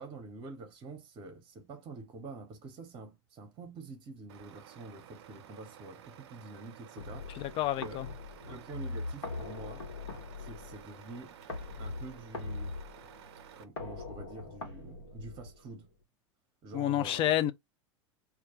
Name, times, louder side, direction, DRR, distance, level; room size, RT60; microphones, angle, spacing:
voice 1, 0.0-7.5 7.8-8.0 8.5-9.9 10.4-11.3 11.8-12.7 13.6-15.9 16.6-17.4, right 3 dB, 35° right, 0.8 m, -47 dB
Truck, 4.3-13.6, right 9 dB, 65° right, 0.4 m, -53 dB
sound 1, 7.0-15.9, left 3 dB, 80° left, 1.0 m, -42 dB
voice 2, 7.3-8.1 16.7-17.5, left 12 dB, 35° left, 0.3 m, -29 dB
2.2 x 2.1 x 3.0 m
figure-of-eight pair, 85°, 15 cm